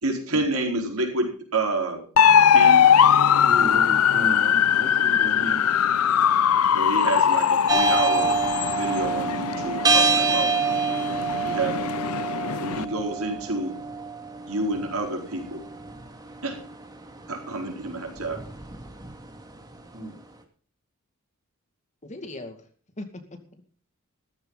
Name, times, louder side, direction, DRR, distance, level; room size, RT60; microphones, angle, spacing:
voice 1, 0.0-2.0 2.5-2.9 5.4-5.6 6.7-8.4 8.7-10.6 11.4-11.8 12.6-13.8 14.5-15.6 16.4-16.6 17.3-18.4, right 2 dB, 80° right, 2 dB, 4.5 m, -29 dB
sound 1, 2.2-12.9, left 8 dB, 80° left, 0.5 m, -20 dB
voice 2, 3.0-5.7 19.9-20.2, right 1 dB, 45° right, 2 dB, 4.7 m, -35 dB
sound 2, 7.7-19.8, right 4 dB, 20° right, 2.2 m, -27 dB
voice 3, 22.0-22.7 23.0-23.7, left 2 dB, 35° left, 6 dB, 2.3 m, -39 dB
15.0 x 14.5 x 4.0 m, 0.43 s
head